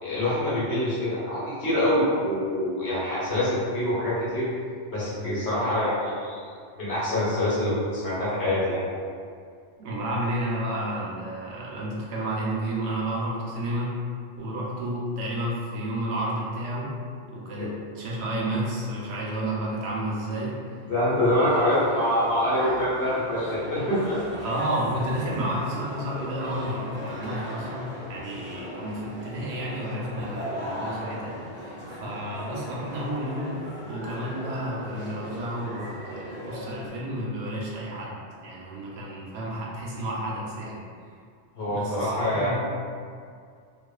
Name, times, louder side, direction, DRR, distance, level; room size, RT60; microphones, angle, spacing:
voice 1, 0.0-4.5 4.9-6.4 6.8-8.8 17.6-17.7 20.8-24.2 41.6-42.5, left 1 dB, 70° left, -9 dB, 1.1 m, -25 dB
voice 2, 9.8-13.9 14.4-16.9 17.3-20.5 21.1-21.7 24.4-33.6 33.9-40.9 41.7-42.5, right 1 dB, 75° right, -4 dB, 0.8 m, -31 dB
sound 1, 21.4-36.9, equal, 15° right, 0.3 m, -38 dB
2.4 x 2.3 x 2.2 m, 2.2 s
omnidirectional pair, 1.2 m